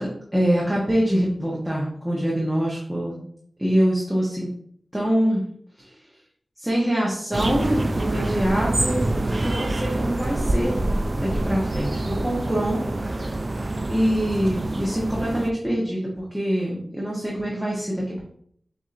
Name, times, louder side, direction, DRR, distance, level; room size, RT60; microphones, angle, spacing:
voice 1, 0.0-3.2 3.6-4.5 4.9-5.4 5.8-5.9 6.6-9.1 9.4-10.8 11.2-12.8 13.9-18.2, equal, 5° right, -5 dB, 1.0 m, -24 dB
sound 1, 7.3-15.5, right 2 dB, 40° right, 0.3 m, -26 dB
6.9 x 2.8 x 2.6 m, 0.66 s
wide cardioid pair, 65°, 0 cm